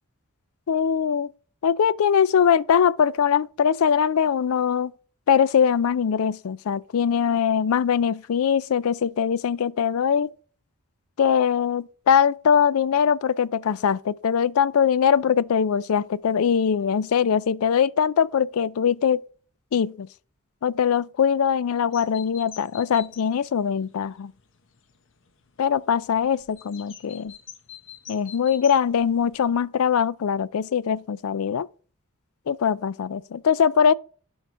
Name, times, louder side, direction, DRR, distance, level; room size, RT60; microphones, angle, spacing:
voice 1, 0.7-1.3 1.6-4.9 5.3-10.3 11.2-19.2 19.7-20.1 20.6-24.3 25.6-27.3 28.1-31.7 32.5-33.9, left 7 dB, 75° left, 0.4 m, -22 dB
sound 1, 21.9-29.6, left 9 dB, 60° left, 1.0 m, -47 dB
12.0 x 4.7 x 3.7 m
head